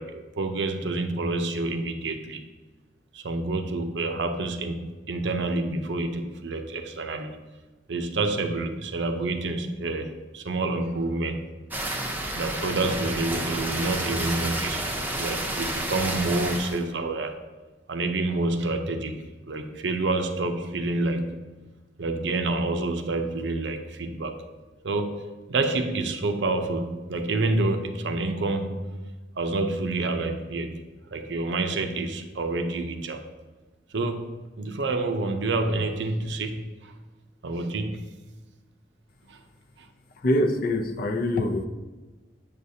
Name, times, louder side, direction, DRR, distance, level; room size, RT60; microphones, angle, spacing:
voice 1, 0.0-2.4 3.1-7.3 7.9-11.4 12.3-14.9 15.2-17.3 17.9-21.4 22.0-24.4 24.8-28.8 29.4-30.8 31.1-33.3 33.9-36.9 37.4-38.0 39.3-39.4, right 2 dB, 70° right, 6 dB, 0.6 m, -28 dB
sound 1, 11.7-16.8, right 1 dB, 10° right, 0.7 m, -30 dB
voice 2, 40.2-41.7, left 1 dB, 50° left, 5 dB, 0.5 m, -24 dB
7.2 x 6.6 x 2.7 m, 1.3 s
head